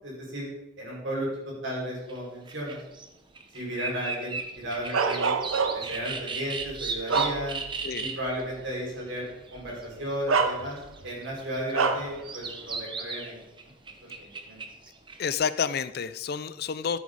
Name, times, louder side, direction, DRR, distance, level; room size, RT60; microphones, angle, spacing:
voice 1, 0.0-0.5 0.8-2.8 3.5-5.4 5.7-7.6 8.0-10.8 11.0-13.4 14.2-14.6, equal, 65° right, -3 dB, 5.2 m, -34 dB
sound 1, 2.1-2.2 2.5-3.1 3.4-8.4 8.9-10.1 10.7-15.3, right 4 dB, 25° right, 0.9 m, -36 dB
Bark, 4.9-6.0 6.6-7.8 8.3-8.4 9.6-9.7 10.3-11.1 11.7-12.2, right 5 dB, 85° right, 0.7 m, -26 dB
voice 2, 15.2-17.0, left 6 dB, 50° left, 15 dB, 0.4 m, -29 dB
14.0 x 8.5 x 4.1 m, 0.90 s
head